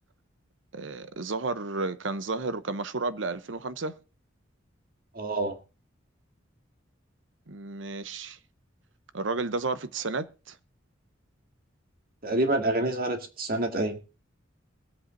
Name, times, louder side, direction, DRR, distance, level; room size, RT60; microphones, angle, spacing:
voice 1, 0.7-4.0 7.5-8.4 9.1-10.6, right 3 dB, 70° right, 0.8 m, -32 dB
voice 2, 5.1-5.6 12.2-14.0, right 2 dB, 50° right, 2.1 m, -27 dB
23.0 x 8.2 x 2.7 m
head